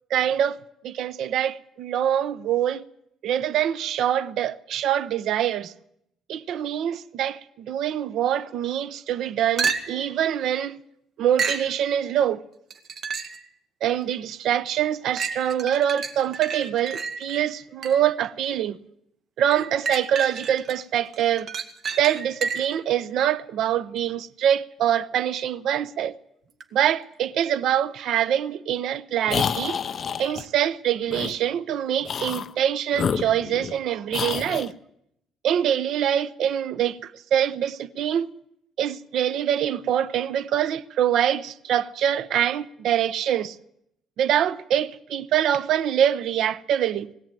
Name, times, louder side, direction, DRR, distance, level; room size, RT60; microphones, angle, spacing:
voice 1, 0.1-0.6 0.8-2.8 3.2-5.7 6.3-10.8 11.2-12.4 13.8-18.8 19.4-21.5 22.0-26.1 26.7-29.8 30.2-34.7 35.4-38.3 38.8-43.6 44.2-47.1, right 10 dB, 60° right, 0.9 m, -24 dB
sound 1, 9.6-10.1 11.4-11.7 12.7-13.5 14.0-14.1 15.2-18.2 19.5-20.7 21.1-22.8 26.6-26.7, right 5 dB, 40° right, 1.9 m, -30 dB
sound 2, 29.3-30.4 31.1-31.4 32.0-32.5 32.9-33.8 34.1-34.7, left 7 dB, 35° left, 0.7 m, -28 dB
20.5 x 17.0 x 9.2 m
cardioid pair, 160°, 0 cm